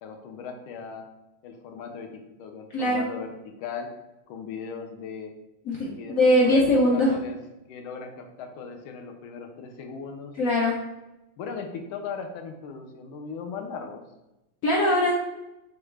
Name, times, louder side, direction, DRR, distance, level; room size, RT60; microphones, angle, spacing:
voice 1, 0.0-1.1 1.4-3.9 4.3-5.3 6.0-6.6 6.9-7.4 7.7-10.6 11.4-14.0, left 5 dB, 85° left, 4 dB, 1.5 m, -38 dB
voice 2, 2.7-3.1 5.7-7.1 10.4-10.7 14.6-15.1, left 1 dB, 70° left, -3 dB, 0.7 m, -21 dB
6.2 x 2.4 x 3.2 m, 0.94 s
omnidirectional pair, 2.2 m